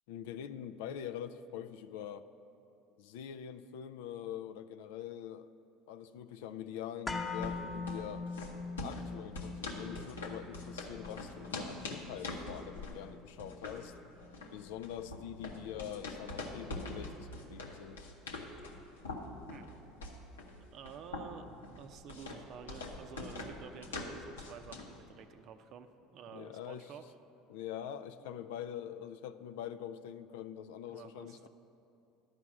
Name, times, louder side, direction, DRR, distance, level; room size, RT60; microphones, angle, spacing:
voice 1, 0.1-2.3 3.0-5.5 5.9-8.3 8.8-13.9 14.5-18.1 26.3-26.9 27.5-31.5, left 10 dB, 75° left, 11 dB, 0.3 m, -44 dB
sound 1, 7.1-15.1 15.4-15.5, left 4 dB, 20° left, 0.9 m, -44 dB
sound 2, 7.2-25.0, left 2 dB, 90° left, 0.9 m, -44 dB
voice 2, 20.6-21.5 21.8-27.0 28.2-28.5 30.9-31.5, right 7 dB, 55° right, 9 dB, 0.6 m, -51 dB
11.0 x 4.9 x 7.2 m, 2.7 s
hypercardioid pair, 75°, 0 cm